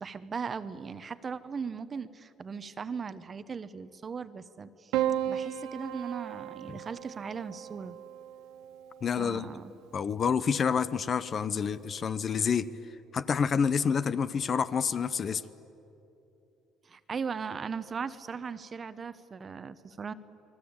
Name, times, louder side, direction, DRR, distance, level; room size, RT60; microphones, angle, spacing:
voice 1, 0.0-4.9 5.3-8.0 9.2-9.7 16.8-20.1, right 5 dB, 30° right, 13 dB, 1.0 m, -38 dB
Piano, 4.9-9.4 10.6-11.3, right 11 dB, 80° right, 1.4 m, -35 dB
voice 2, 9.0-9.5 9.9-12.7 13.1-15.4, left 6 dB, 35° left, 15 dB, 0.8 m, -28 dB
29.0 x 21.0 x 8.8 m, 3.0 s
cardioid pair, 125°, 0 cm